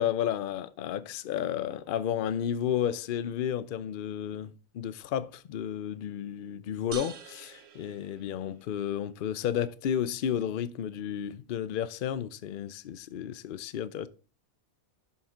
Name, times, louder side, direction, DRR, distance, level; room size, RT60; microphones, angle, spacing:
voice 1, 0.0-14.1, left 9 dB, 90° left, 0.4 m, -32 dB
sound 1, 6.9-8.8, right 8 dB, 85° right, 1.3 m, -45 dB
7.2 x 5.7 x 3.7 m
omnidirectional pair, 1.5 m